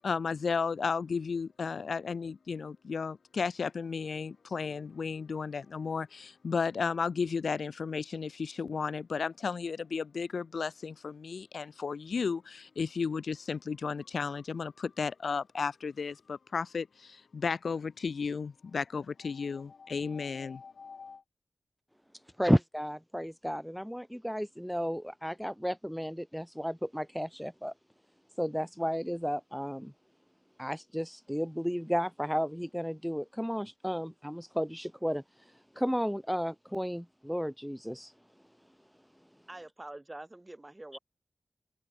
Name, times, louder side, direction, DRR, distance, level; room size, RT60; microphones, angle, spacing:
voice 1, 0.0-21.2, left 5 dB, 75° left, 0.7 m, -34 dB
voice 2, 22.4-27.7 28.4-29.9 30.6-35.2 35.8-38.1 40.9-41.0, equal, ahead, 0.9 m, -33 dB
voice 3, 39.5-41.0, right 1 dB, 20° right, 3.1 m, -45 dB
wide cardioid pair, 70°, 0 cm